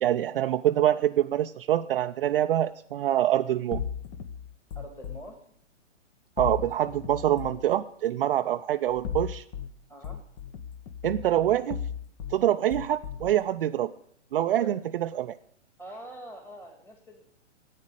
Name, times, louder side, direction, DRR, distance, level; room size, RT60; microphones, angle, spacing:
voice 1, 0.0-3.8 6.4-9.4 11.0-11.8 12.3-13.9 14.3-15.4, right 12 dB, 50° right, 7 dB, 0.6 m, -25 dB
sound 1, 3.7-5.2 6.4-7.7 8.9-9.7 10.0-12.4 12.7-13.4, left 8 dB, 35° left, 1.1 m, -36 dB
voice 2, 4.8-5.5 9.9-10.2 14.6-14.8 15.8-17.3, right 1 dB, 5° left, 2 dB, 1.8 m, -44 dB
11.0 x 8.7 x 9.9 m, 0.66 s
hypercardioid pair, 135°, 36 cm